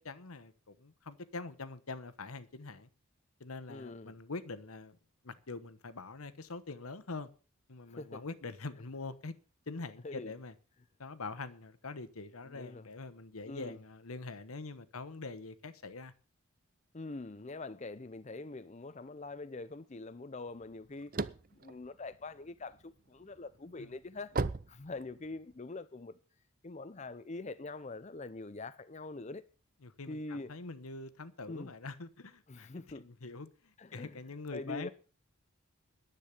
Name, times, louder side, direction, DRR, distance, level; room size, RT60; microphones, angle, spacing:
voice 1, 0.0-2.9 3.4-5.0 5.2-7.3 7.7-9.3 9.7-10.5 11.0-16.1 23.8-23.9 29.8-32.7 32.9-34.9, left 3 dB, 80° left, 1.1 m, -44 dB
voice 2, 3.7-4.2 7.9-8.2 10.0-10.3 12.4-12.9 13.5-13.8 16.9-21.1 21.5-24.3 24.7-26.1 26.6-29.5 30.1-30.5 31.5-31.7 32.5-33.1 33.8-34.2 34.5-34.9, left 3 dB, 30° left, 0.6 m, -44 dB
sound 1, 20.6-22.8 23.3-25.5, right 3 dB, 40° right, 0.6 m, -36 dB
10.5 x 8.4 x 8.4 m
head